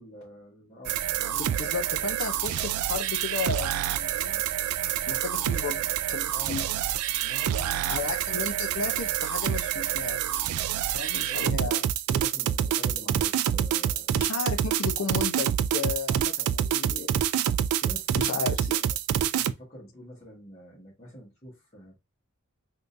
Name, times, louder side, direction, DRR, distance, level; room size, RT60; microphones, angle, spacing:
voice 1, 0.0-1.6 5.4-5.5 6.3-6.8 7.2-8.1 11.1-14.2 17.8-18.4 18.8-21.9, equal, 30° left, 1.5 m, -46 dB
sound 1, 0.9-19.5, right 10 dB, 85° right, 0.3 m, -27 dB
voice 2, 1.2-4.4 5.1-5.8 6.1-6.6 7.9-10.6 10.9-11.8 14.1-17.2 18.1-18.8, left 5 dB, 65° left, 0.6 m, -34 dB
3.7 x 2.8 x 2.5 m
head